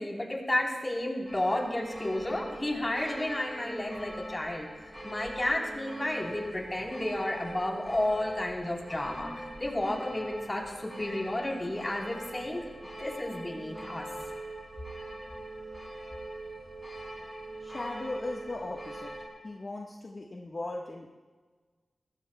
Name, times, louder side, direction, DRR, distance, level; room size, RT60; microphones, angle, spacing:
voice 1, 0.0-4.7 5.0-9.3 9.6-12.7 13.0-14.0, left 1 dB, 25° left, -1 dB, 4.1 m, -32 dB
sound 1, 1.3-19.3, right 1 dB, ahead, 6.5 m, -42 dB
voice 2, 17.6-19.1 19.4-21.1, left 2 dB, 45° left, -2 dB, 1.5 m, -38 dB
26.5 x 21.0 x 2.4 m, 1.4 s
wide cardioid pair, 105°, 0 cm